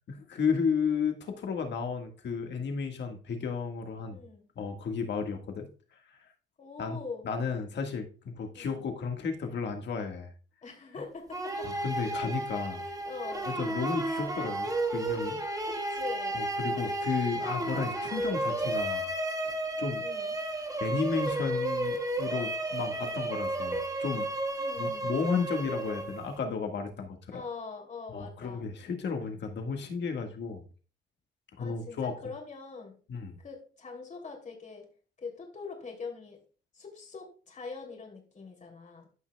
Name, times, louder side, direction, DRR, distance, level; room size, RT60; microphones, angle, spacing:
voice 1, 0.1-4.2 4.5-5.7 6.8-7.0 7.2-10.3 11.6-12.8 13.5-15.4 16.3-19.0 19.4-20.0 20.8-24.3 24.8-27.4 28.1-30.6 31.6-32.1 33.1-33.4, left 5 dB, 60° left, 5 dB, 1.8 m, -33 dB
voice 2, 4.1-4.4 6.6-7.3 8.5-8.8 10.6-11.8 12.8-13.5 15.6-16.4 17.6-17.9 20.0-20.4 24.6-25.1 27.3-28.7 31.6-33.0 33.4-34.9 35.2-36.4 36.7-39.1, left 4 dB, 40° left, 1 dB, 3.1 m, -43 dB
sound 1, 11.3-26.4, right 1 dB, 15° right, 1.5 m, -32 dB
14.5 x 5.8 x 2.3 m, 0.38 s
cardioid pair, 90°, 20 cm